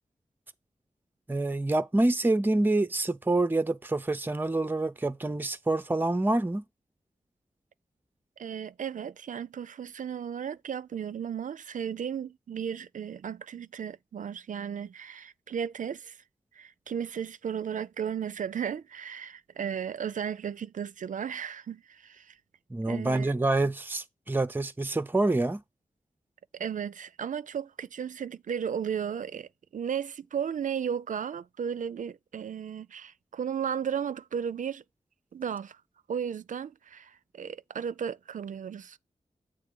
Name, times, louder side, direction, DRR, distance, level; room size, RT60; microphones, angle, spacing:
voice 1, 1.3-6.6 22.7-25.6, right 2 dB, 15° right, 0.5 m, -27 dB
voice 2, 8.4-16.2 16.5-22.4 22.9-23.3 26.5-34.8 35.3-35.8 36.1-39.0, right 8 dB, 80° right, 0.4 m, -35 dB
8.1 x 3.4 x 5.2 m
wide cardioid pair, 90°, 13 cm